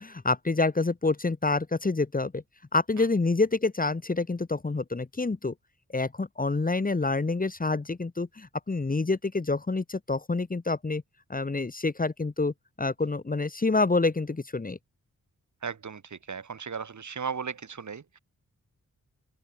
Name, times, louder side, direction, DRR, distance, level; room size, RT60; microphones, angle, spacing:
voice 1, 0.0-2.4 2.7-5.5 5.9-11.0 11.3-14.8, left 3 dB, 25° left, 1.4 m, -27 dB
voice 2, 15.6-18.2, right 6 dB, 60° right, 4.2 m, -36 dB
open air
cardioid pair, 70°, 32 cm